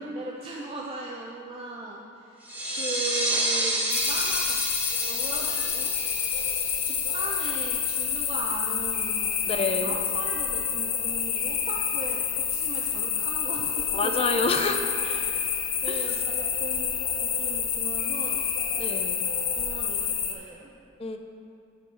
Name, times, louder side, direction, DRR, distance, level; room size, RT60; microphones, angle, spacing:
voice 1, 0.1-4.6 5.0-5.9 6.8-14.3 15.0-18.5 19.6-20.7, right 2 dB, 25° right, -3 dB, 0.6 m, -38 dB
sound 1, 2.4-7.8, right 1 dB, 10° right, 1.0 m, -30 dB
sound 2, 3.9-20.3, left 7 dB, 50° left, 0.9 m, -28 dB
voice 2, 9.5-9.9 13.9-14.8 15.9-16.1 18.8-19.1 21.0-21.2, left 3 dB, 25° left, 6 dB, 0.4 m, -27 dB
13.5 x 4.6 x 4.6 m, 2.5 s
head